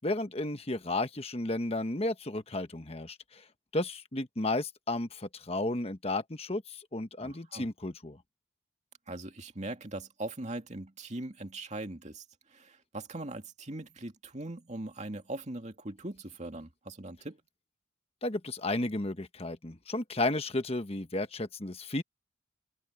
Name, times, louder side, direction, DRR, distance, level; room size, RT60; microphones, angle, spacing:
voice 1, 0.0-3.4 3.7-8.2 18.2-22.0, left 2 dB, 30° left, 1.2 m, -33 dB
voice 2, 7.2-7.7 9.1-17.4, right 2 dB, 35° right, 2.5 m, -41 dB
head